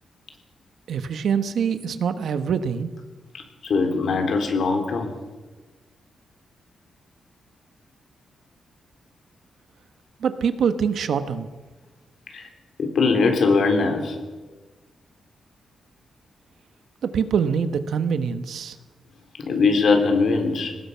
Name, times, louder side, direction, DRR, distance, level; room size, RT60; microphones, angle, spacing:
voice 1, 0.9-2.9 10.2-11.5 17.0-18.8, right 7 dB, 70° right, 10 dB, 1.3 m, -24 dB
voice 2, 3.6-5.1 12.3-12.5 12.8-14.2 19.4-20.7, left 4 dB, 55° left, 4 dB, 3.7 m, -21 dB
24.0 x 19.0 x 5.8 m, 1.3 s
wide cardioid pair, 160°, 0 cm